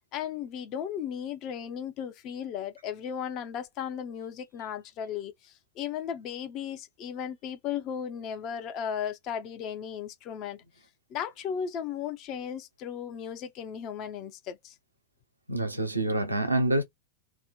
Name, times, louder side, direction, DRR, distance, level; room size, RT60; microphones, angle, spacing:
voice 1, 0.1-10.6 11.1-14.7, left 8 dB, 40° left, 0.6 m, -36 dB
voice 2, 15.5-16.8, right 1 dB, 85° right, 0.5 m, -26 dB
2.4 x 2.1 x 3.6 m
figure-of-eight pair, 90°, 0 cm